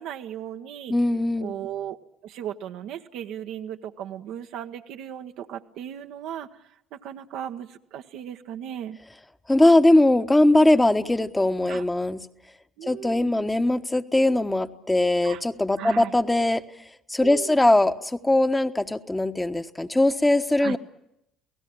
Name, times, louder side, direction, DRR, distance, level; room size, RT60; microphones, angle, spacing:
voice 1, 0.0-0.9 1.4-2.0 2.2-6.6 6.9-9.0 11.7-11.8 12.8-13.3 15.2-15.4 15.8-16.1 17.2-17.6 20.6-20.8, right 10 dB, 65° right, 6 dB, 1.2 m, -36 dB
voice 2, 0.9-1.5 9.5-12.3 12.8-16.6 17.1-20.8, left 1 dB, 10° left, 8 dB, 1.2 m, -20 dB
28.5 x 18.0 x 8.9 m, 0.83 s
hypercardioid pair, 60°, 0 cm